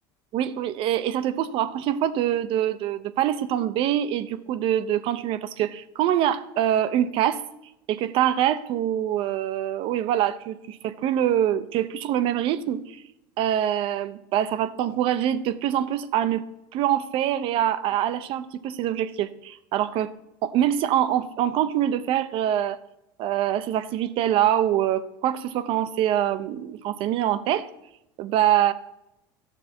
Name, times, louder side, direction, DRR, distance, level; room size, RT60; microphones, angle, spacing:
voice 1, 0.3-7.4 7.9-13.0 13.4-16.4 16.7-20.1 20.4-22.8 23.2-27.7 28.2-28.7, right 11 dB, 50° right, 14 dB, 0.8 m, -24 dB
12.5 x 7.1 x 4.4 m, 0.86 s
supercardioid pair, 115°, 11 cm